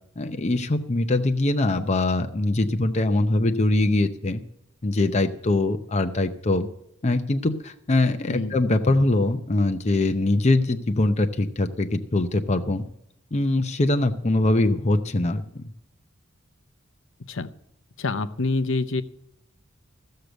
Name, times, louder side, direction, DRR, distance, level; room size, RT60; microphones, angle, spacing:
voice 1, 0.2-4.4 4.8-6.7 7.0-12.8 13.3-15.6, left 2 dB, 35° left, 7 dB, 0.7 m, -22 dB
voice 2, 18.0-19.0, left 3 dB, 65° left, 12 dB, 0.8 m, -26 dB
15.0 x 6.6 x 7.9 m, 0.76 s
head